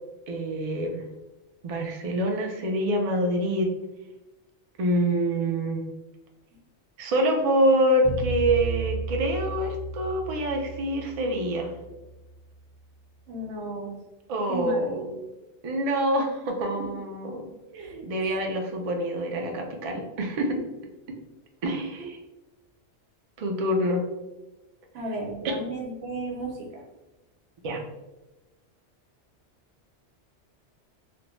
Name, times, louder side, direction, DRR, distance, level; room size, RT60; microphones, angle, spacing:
voice 1, 0.3-1.0 1.6-3.7 4.8-5.8 7.0-11.7 14.3-15.0 15.6-17.5 18.0-20.6 21.6-22.2 23.4-24.0 27.6-27.8, right 1 dB, 70° right, 2 dB, 0.3 m, -26 dB
sound 1, 8.0-13.1, right 4 dB, 10° right, 0.9 m, -35 dB
voice 2, 13.3-14.0 14.5-15.1 16.7-16.9 17.7-18.1 18.4-18.5 24.9-26.8, right 2 dB, 85° right, 0 dB, 1.0 m, -34 dB
2.5 x 2.1 x 2.9 m, 1.1 s
omnidirectional pair, 1.2 m